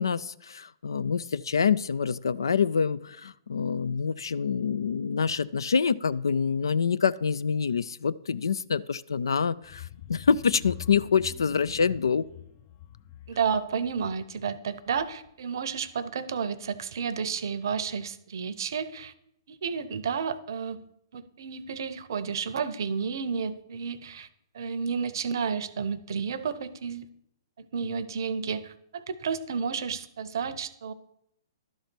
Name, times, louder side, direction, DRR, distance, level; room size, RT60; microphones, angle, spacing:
voice 1, 0.0-12.2, left 6 dB, 80° left, 17 dB, 0.4 m, -26 dB
sound 1, 9.6-15.4 15.8-16.0 16.4-16.5, left 11 dB, 40° left, 0.6 m, -45 dB
voice 2, 13.3-19.1 19.5-20.8 21.1-24.3 24.5-27.1 27.7-30.9, right 6 dB, 65° right, 14 dB, 0.7 m, -31 dB
11.5 x 4.0 x 6.1 m, 0.75 s
hypercardioid pair, 125°, 2 cm